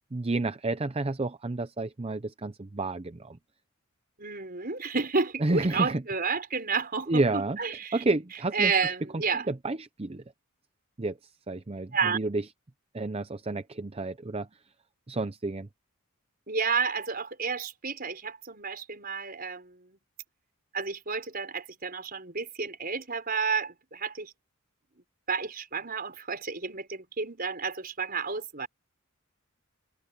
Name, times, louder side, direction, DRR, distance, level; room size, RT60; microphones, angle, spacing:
voice 1, 0.1-3.4 5.4-6.0 7.1-7.6 7.9-8.9 9.5-10.2 11.0-12.4 12.9-14.5 15.1-15.7, right 2 dB, 25° right, 0.6 m, -30 dB
voice 2, 4.2-8.0 8.5-9.5 11.9-12.2 16.5-20.0 20.7-24.3 25.3-28.7, right 5 dB, 45° right, 5.2 m, -31 dB
head